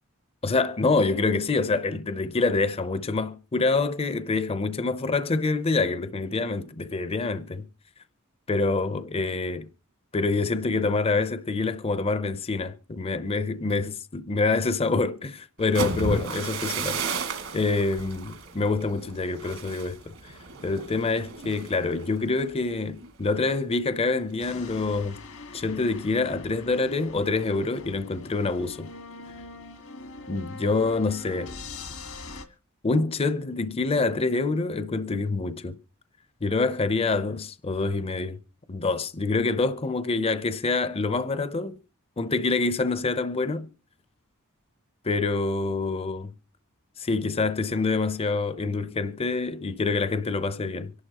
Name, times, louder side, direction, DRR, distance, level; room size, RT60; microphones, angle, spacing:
voice 1, 0.4-7.6 8.5-9.7 10.1-17.0 17.5-20.0 20.6-25.2 25.5-28.9 30.3-31.5 32.8-35.8 36.4-38.4 38.7-41.8 42.2-43.7 45.0-46.3 47.0-50.9, left 3 dB, 25° left, 0.6 m, -26 dB
sound 1, 15.6-23.4 23.8-24.1 24.5-24.9, right 4 dB, 65° right, 2.0 m, -34 dB
sound 2, 24.4-32.4, left 3 dB, 80° left, 1.6 m, -42 dB
25.0 x 11.5 x 2.9 m
head